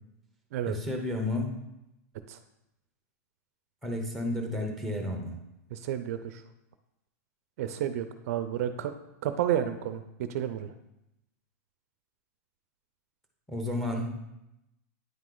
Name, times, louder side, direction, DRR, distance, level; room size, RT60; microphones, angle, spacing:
voice 1, 0.7-1.5 3.8-5.4 13.5-14.1, left 1 dB, ahead, 1 dB, 0.9 m, -31 dB
voice 2, 5.7-6.4 7.6-8.9 9.2-10.7, right 10 dB, 60° right, 9 dB, 0.4 m, -31 dB
9.0 x 3.1 x 3.8 m, 0.88 s
supercardioid pair, 150°, 9 cm